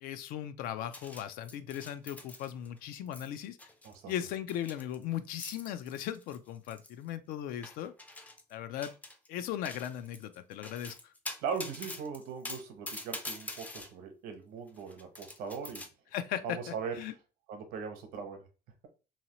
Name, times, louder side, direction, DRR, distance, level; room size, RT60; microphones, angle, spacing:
voice 1, 0.0-3.6 4.1-7.9 8.5-8.9 9.3-11.1 16.1-17.1, left 11 dB, 75° left, 0.4 m, -38 dB
sound 1, 0.9-2.8 3.1-3.3 3.6-7.1 7.6-8.5 8.8-9.3 9.6-13.9 14.7-15.9, left 2 dB, 10° left, 0.3 m, -44 dB
voice 2, 11.4-15.8 16.4-17.0 17.5-18.4, right 6 dB, 85° right, 0.9 m, -39 dB
2.8 x 2.8 x 2.9 m
cardioid pair, 160°, 15 cm